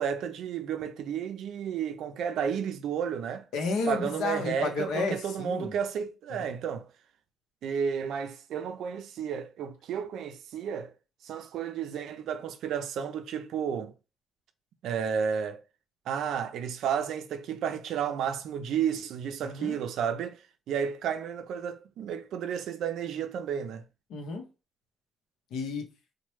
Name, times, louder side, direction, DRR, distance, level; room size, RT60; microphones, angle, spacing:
voice 1, 0.0-3.5 3.9-6.9 7.6-10.9 11.2-13.9 14.8-15.6 16.1-20.4 20.7-23.9, right 7 dB, 80° right, 0.4 m, -32 dB
voice 2, 3.5-5.7 19.4-19.8 24.1-24.4 25.5-25.8, left 4 dB, 85° left, 0.7 m, -32 dB
3.0 x 2.1 x 3.1 m
cardioid pair, 90°, 0 cm